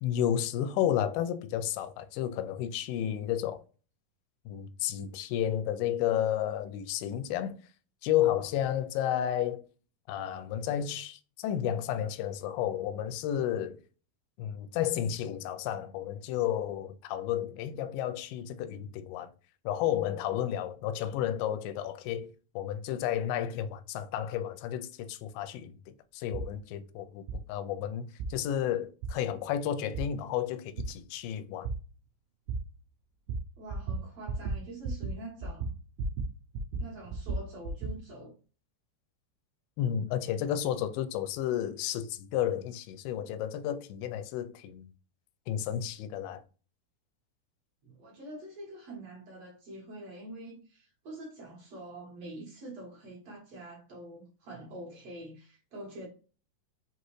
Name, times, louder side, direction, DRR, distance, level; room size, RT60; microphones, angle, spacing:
voice 1, 0.0-3.6 4.5-7.6 8.0-9.7 10.1-13.8 14.4-19.3 19.7-22.3 22.6-25.7 26.1-27.2 27.5-31.7 39.8-44.9 45.5-46.4, left 10 dB, 80° left, 2.2 m, -32 dB
sound 1, 26.3-26.5 27.3-27.4 28.2-28.3 29.0-29.1 29.9-30.1 30.8-30.9 31.6-31.8 32.5-32.6 33.3-33.4 33.7-34.0 34.3-34.6 34.8-35.1 35.4-36.3 36.5-37.9, right 3 dB, 80° right, 1.9 m, -33 dB
voice 2, 33.6-35.7 36.8-38.4 47.8-56.1, right 1 dB, 55° right, 2.0 m, -45 dB
6.0 x 2.5 x 3.1 m
omnidirectional pair, 4.4 m